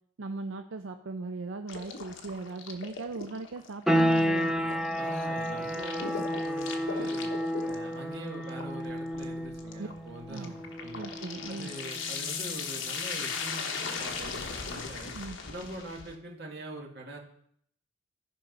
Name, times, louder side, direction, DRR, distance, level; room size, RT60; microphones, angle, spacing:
voice 1, 0.2-4.6 9.8-9.9 10.3-10.5 10.9-11.7 15.1-15.4, right 3 dB, 75° right, 6 dB, 0.5 m, -38 dB
sound 1, 1.7-16.2, left 5 dB, 70° left, 1.2 m, -39 dB
sound 2, 3.9-14.4, equal, ahead, 0.7 m, -32 dB
voice 2, 5.0-7.3 7.6-11.0 11.5-15.1 15.5-17.2, right 1 dB, 55° right, -1 dB, 2.2 m, -43 dB
13.5 x 5.3 x 5.4 m, 0.69 s
head